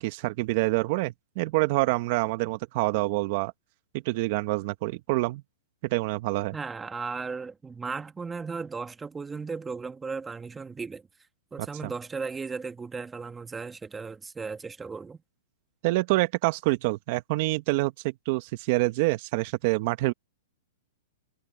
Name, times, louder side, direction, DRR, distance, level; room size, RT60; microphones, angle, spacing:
voice 1, 0.0-3.5 4.0-5.4 5.9-6.5 11.6-11.9 15.8-20.1, right 21 dB, 50° right, 1.3 m, -26 dB
voice 2, 6.5-11.0 11.5-15.2, right 4 dB, 10° right, 1.7 m, -36 dB
hypercardioid pair, 135°, 0 cm